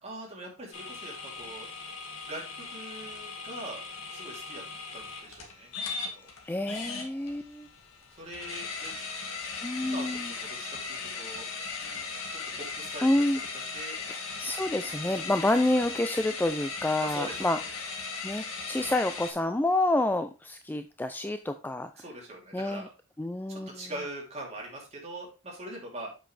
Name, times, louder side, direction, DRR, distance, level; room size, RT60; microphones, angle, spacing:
voice 1, 0.0-1.7 2.3-3.8 4.1-4.6 4.9-5.7 6.0-6.3 8.2-8.9 9.8-11.5 11.8-13.1 13.7-14.0 15.0-15.3 17.0-17.6 22.0-22.9 23.5-26.1, right 1 dB, 30° right, -2 dB, 3.0 m, -42 dB
sound 1, 0.7-19.3, left 4 dB, 65° left, 1.8 m, -38 dB
voice 2, 6.4-7.7 9.6-10.3 13.0-13.4 14.0-17.6 18.2-21.9 22.5-22.9 23.2-23.8, left 1 dB, 10° left, 8 dB, 0.3 m, -28 dB
7.6 x 6.2 x 3.3 m, 0.31 s
head